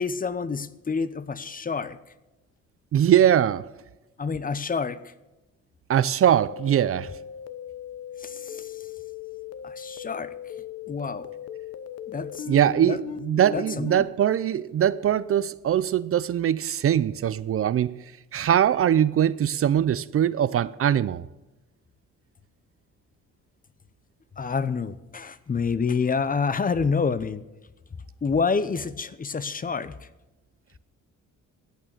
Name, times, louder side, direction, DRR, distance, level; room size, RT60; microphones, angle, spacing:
voice 1, 0.0-2.0 4.2-5.1 8.2-8.9 9.6-10.3 10.9-11.3 12.1-12.5 12.8-13.0 13.5-14.1 24.4-27.4 28.2-30.1, left 5 dB, 30° left, 0.8 m, -28 dB
voice 2, 2.9-3.7 5.9-7.1 12.5-17.9 18.3-21.2, right 10 dB, 50° right, 0.5 m, -22 dB
sound 1, 6.5-14.0, left 8 dB, 55° left, 0.9 m, -38 dB
14.5 x 8.8 x 6.6 m
cardioid pair, 90°, 30 cm